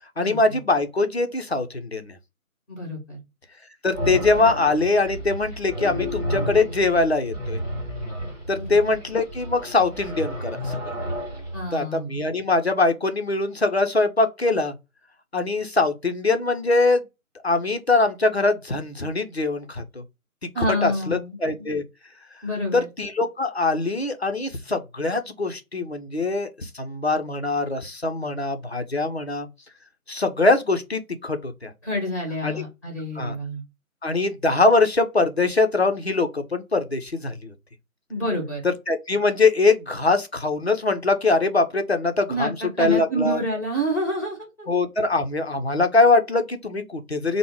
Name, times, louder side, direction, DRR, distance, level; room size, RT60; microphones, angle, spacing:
voice 1, 0.2-2.2 3.8-7.6 8.5-11.0 11.7-14.7 15.3-17.0 17.4-20.0 20.6-21.8 22.7-29.5 30.1-31.7 32.4-32.6 33.2-33.4 34.0-37.5 38.6-43.4 44.7-47.4, left 3 dB, 50° left, 0.5 m, -22 dB
voice 2, 2.7-3.2 8.5-8.6 11.5-12.2 20.5-21.7 22.4-22.9 31.8-33.6 38.1-38.6 42.3-42.5 42.8-44.7, equal, 10° left, 1.1 m, -28 dB
sound 1, 3.9-11.7, equal, 30° right, 1.8 m, -31 dB
3.4 x 2.1 x 3.0 m
figure-of-eight pair, 160°, 43 cm